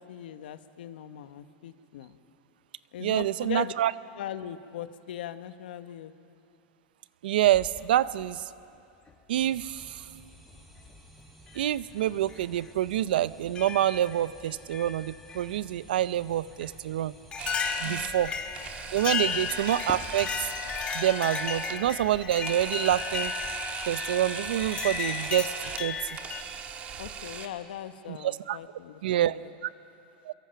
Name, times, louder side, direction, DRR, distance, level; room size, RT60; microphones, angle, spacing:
voice 1, 0.0-2.2 2.9-3.7 4.2-6.1 17.8-18.1 19.1-19.4 27.0-29.4, left 11 dB, 80° left, 11 dB, 1.1 m, -40 dB
voice 2, 3.0-3.9 7.2-8.4 9.3-10.0 11.5-17.1 17.8-18.3 18.9-20.3 20.9-23.3 23.9-26.0 28.1-28.6 29.0-29.4 29.6-29.7 30.3-30.4, right 12 dB, 85° right, 17 dB, 0.6 m, -27 dB
sound 1, 7.5-8.3 9.5-9.6 10.6-10.9 11.5-11.6 12.3-12.4 13.6-14.3 14.7-15.5 16.6-16.7 17.3-26.4, left 6 dB, 20° left, 1.1 m, -34 dB
sound 2, 9.3-20.6, equal, ahead, 2.7 m, -53 dB
Camera, 17.4-27.5, right 7 dB, 30° right, 1.4 m, -39 dB
27.0 x 22.5 x 5.8 m, 2.6 s
supercardioid pair, 150°, 5 cm